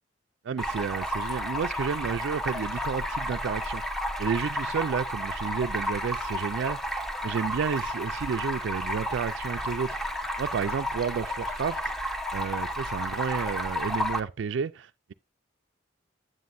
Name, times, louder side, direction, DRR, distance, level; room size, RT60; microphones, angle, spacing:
voice 1, 0.4-3.8 4.2-10.1 10.4-11.9 12.3-15.1, right 6 dB, 70° right, 0.4 m, -31 dB
Stream, 0.6-14.2, equal, ahead, 0.8 m, -32 dB
9.4 x 7.8 x 2.6 m
head